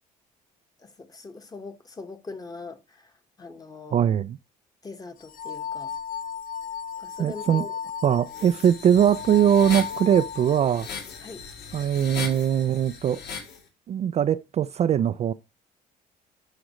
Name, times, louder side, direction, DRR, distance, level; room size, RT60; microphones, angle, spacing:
voice 1, 0.8-3.1 3.4-4.1 4.8-5.9 7.0-7.7 11.2-11.4, left 4 dB, 20° left, 1.4 m, -41 dB
voice 2, 3.9-4.4 7.2-7.6 8.0-10.9 11.7-13.2 13.9-15.3, right 9 dB, 40° right, 0.4 m, -21 dB
sound 1, 5.2-11.1, left 7 dB, 55° left, 0.7 m, -35 dB
sound 2, 8.3-13.6, left 6 dB, 80° left, 2.9 m, -38 dB
11.5 x 5.0 x 3.1 m
cardioid pair, 110°, 17 cm